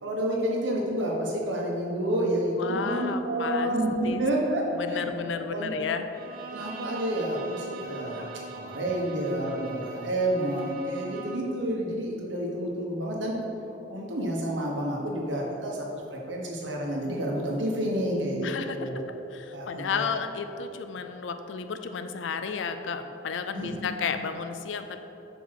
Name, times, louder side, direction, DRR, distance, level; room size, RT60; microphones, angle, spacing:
voice 1, 0.0-3.9 4.2-4.6 4.9-5.7 6.5-8.2 8.5-13.3 13.9-19.1 19.5-20.1 23.5-23.7, right 1 dB, 80° right, -2 dB, 1.3 m, -29 dB
voice 2, 2.6-3.7 4.0-4.2 4.7-6.0 18.4-18.9 19.3-25.0, left 6 dB, 85° left, 8 dB, 0.4 m, -32 dB
Bowed string instrument, 6.1-11.6, right 4 dB, 50° right, 0.6 m, -42 dB
5.2 x 4.8 x 6.0 m, 3.0 s
head